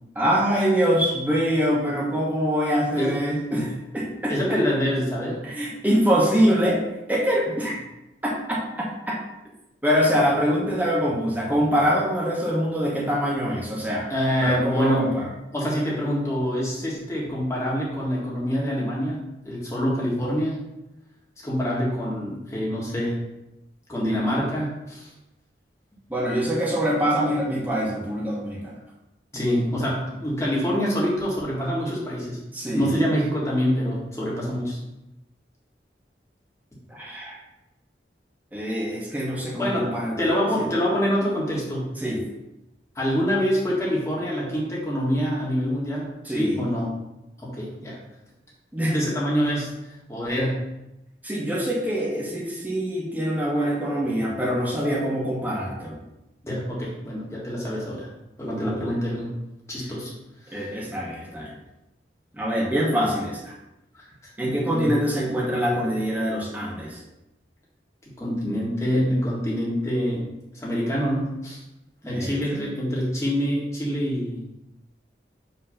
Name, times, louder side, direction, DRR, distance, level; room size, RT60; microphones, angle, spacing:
voice 1, 0.1-4.3 5.4-6.8 7.1-7.8 8.2-8.6 9.1-9.2 9.8-14.1 14.4-15.2 26.1-28.7 32.5-33.1 36.9-37.4 38.5-40.1 40.6-40.7 42.0-42.2 46.2-46.6 48.7-48.9 51.2-56.0 58.6-58.9 60.5-61.5 62.3-63.5 64.4-67.0 72.1-72.6, equal, 10° right, -4 dB, 1.2 m, -24 dB
voice 2, 4.3-5.4 14.1-15.1 15.5-19.2 19.4-20.6 21.4-23.2 23.9-25.1 29.3-32.4 32.7-34.8 39.6-39.9 40.2-41.9 42.9-46.9 47.4-48.0 48.9-49.7 50.1-50.6 56.4-58.1 58.4-59.3 59.7-60.1 60.5-60.7 63.9-64.1 64.4-64.9 68.2-70.3 70.5-71.6 72.0-74.4, equal, 15° left, -6 dB, 1.6 m, -25 dB
5.7 x 3.2 x 5.5 m, 0.94 s
head